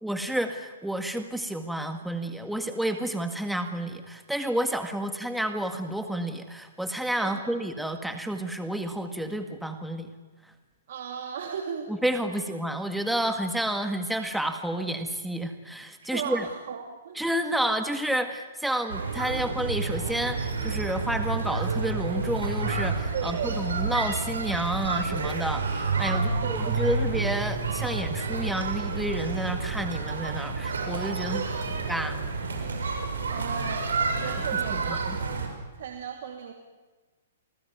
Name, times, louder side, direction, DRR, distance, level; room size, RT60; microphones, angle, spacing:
voice 1, 0.0-10.1 11.9-16.5 17.2-31.4 31.9-32.1 34.7-35.2, right 1 dB, ahead, 6 dB, 1.8 m, -30 dB
voice 2, 7.2-7.6 10.9-11.9 12.3-12.5 16.0-17.2 23.1-23.7 26.1-26.9 31.2-31.8 33.3-35.5 35.7-36.5, right 7 dB, 60° right, 3 dB, 2.8 m, -36 dB
sound 1, 18.9-35.5, right 4 dB, 85° right, 6.8 m, -29 dB
28.5 x 19.5 x 9.4 m, 1.3 s
hypercardioid pair, 135°, 0 cm